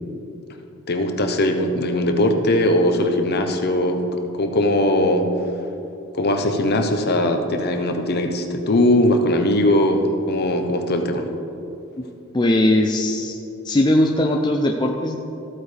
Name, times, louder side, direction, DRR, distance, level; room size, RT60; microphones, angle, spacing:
voice 1, 0.9-5.3 6.1-11.3, left 1 dB, 45° left, 5 dB, 0.8 m, -20 dB
voice 2, 12.3-13.4 13.6-15.2, left 1 dB, 20° left, 2 dB, 0.5 m, -19 dB
14.0 x 8.7 x 3.4 m, 2.7 s
head